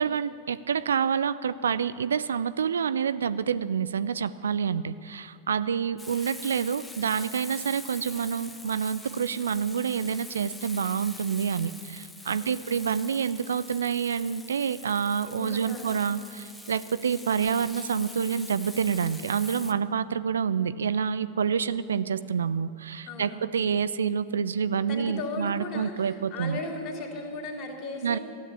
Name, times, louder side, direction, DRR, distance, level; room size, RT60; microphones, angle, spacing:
voice 1, 0.0-26.6 28.0-28.2, right 7 dB, 70° right, 14 dB, 0.4 m, -28 dB
Frying (food), 6.0-19.7, left 1 dB, 5° left, 0.8 m, -44 dB
voice 2, 12.4-12.8 15.2-16.0 23.0-23.5 24.8-28.2, left 2 dB, 30° left, 0 dB, 2.7 m, -37 dB
13.5 x 8.6 x 8.8 m, 2.3 s
figure-of-eight pair, 90°, 0 cm